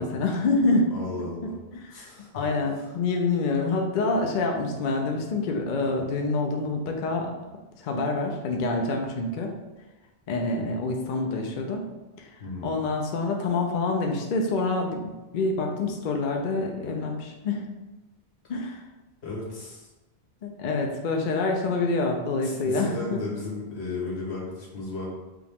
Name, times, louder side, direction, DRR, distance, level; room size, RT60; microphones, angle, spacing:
voice 1, 0.0-0.9 1.7-2.1 2.3-7.3 7.8-9.5 10.3-11.8 12.2-12.3 12.6-17.6 18.5-18.8 20.4-23.2, left 3 dB, 60° left, 2 dB, 0.6 m, -26 dB
voice 2, 0.9-1.5 1.9-2.4 2.8-2.9 12.4-12.8 19.2-19.9 22.4-25.1, left 3 dB, 80° left, -4 dB, 1.4 m, -35 dB
5.0 x 2.3 x 3.4 m, 1.1 s
omnidirectional pair, 1.1 m